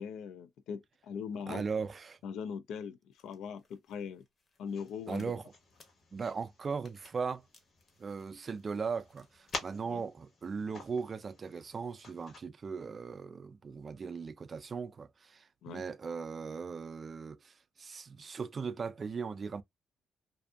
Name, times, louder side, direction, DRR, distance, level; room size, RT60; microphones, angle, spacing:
voice 1, 0.0-1.6 2.2-4.2 4.6-5.3 9.9-10.0 15.6-15.8, left 6 dB, 85° left, 0.3 m, -41 dB
voice 2, 1.5-2.2 5.1-5.4 6.1-7.4 8.0-19.6, right 5 dB, 40° right, 0.3 m, -38 dB
sound 1, 3.1-9.8, left 2 dB, 40° left, 0.8 m, -61 dB
sound 2, 4.6-12.4, left 3 dB, 60° left, 1.1 m, -49 dB
2.6 x 2.5 x 2.3 m
cardioid pair, 90°, 0 cm